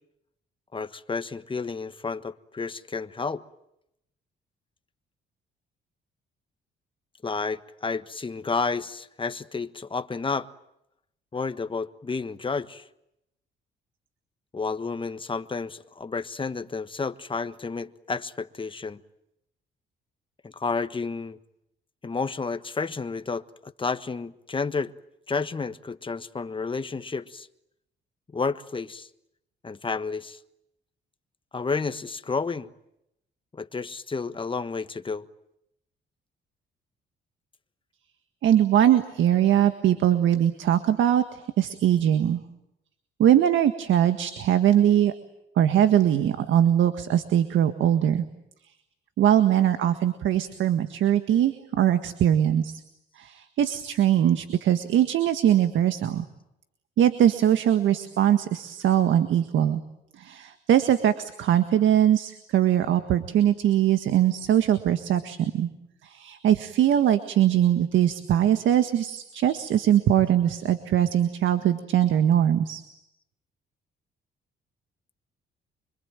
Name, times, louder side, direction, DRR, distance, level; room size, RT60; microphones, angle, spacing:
voice 1, 0.7-3.4 7.2-10.5 11.3-12.9 14.5-19.0 20.4-21.4 22.0-24.9 25.3-27.5 28.3-29.1 29.6-30.4 31.5-32.7 33.5-35.3, left 4 dB, 25° left, 1.4 m, -31 dB
voice 2, 38.4-42.4 43.2-45.1 45.6-48.2 49.2-52.8 53.2-56.2 57.0-59.8 60.2-65.7 66.0-72.8, right 10 dB, 75° right, 1.7 m, -21 dB
26.0 x 24.0 x 9.1 m
cardioid pair, 90°, 20 cm